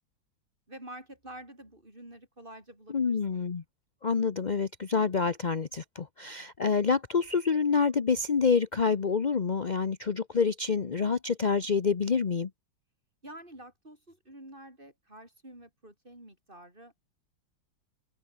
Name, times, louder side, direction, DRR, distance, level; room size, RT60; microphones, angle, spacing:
voice 1, 0.7-3.5 13.2-17.0, right 1 dB, 25° right, 7.9 m, -48 dB
voice 2, 2.9-3.6 4.0-12.5, left 5 dB, 45° left, 0.5 m, -27 dB
open air
omnidirectional pair, 2.2 m